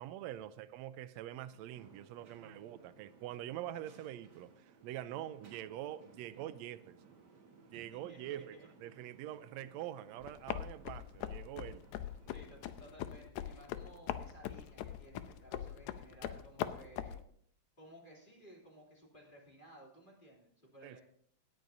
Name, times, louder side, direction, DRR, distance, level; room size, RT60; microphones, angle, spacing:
voice 1, 0.0-7.0 7.7-11.8 20.8-21.0, right 12 dB, 80° right, 1.7 m, -45 dB
sound 1, 1.5-12.9, right 4 dB, 45° right, 1.6 m, -61 dB
voice 2, 7.7-8.7 12.3-17.2 17.8-21.0, equal, 15° left, 2.9 m, -57 dB
sound 2, 10.2-17.2, left 11 dB, 90° left, 2.1 m, -42 dB
18.0 x 9.3 x 2.7 m
omnidirectional pair, 3.4 m